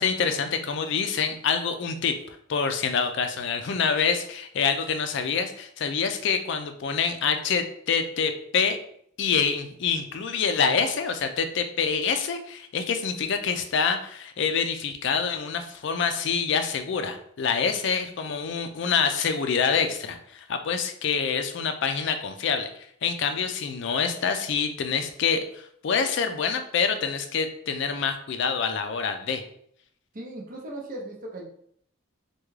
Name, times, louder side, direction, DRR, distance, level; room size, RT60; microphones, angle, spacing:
voice 1, 0.0-8.8 9.2-22.7 23.0-29.4, left 6 dB, 60° left, 7 dB, 0.4 m, -26 dB
voice 2, 30.1-31.4, right 1 dB, 40° right, 0 dB, 0.6 m, -37 dB
3.5 x 2.3 x 3.1 m, 0.66 s
head